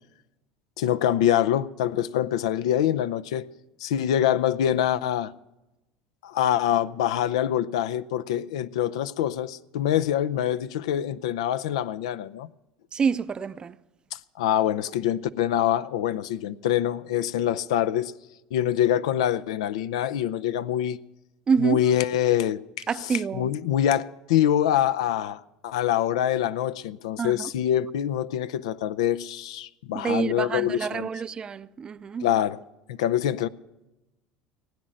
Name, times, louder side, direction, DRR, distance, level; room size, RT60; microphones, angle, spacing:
voice 1, 0.8-3.5 3.8-5.3 6.2-12.5 14.1-18.1 18.5-21.0 21.6-31.1 32.2-32.6 32.9-33.5, left 11 dB, 90° left, 0.5 m, -25 dB
voice 2, 12.9-13.7 21.5-21.8 22.9-23.5 27.2-27.3 29.9-32.3, right 6 dB, 30° right, 0.5 m, -27 dB
16.5 x 9.2 x 7.6 m
supercardioid pair, 105°, 3 cm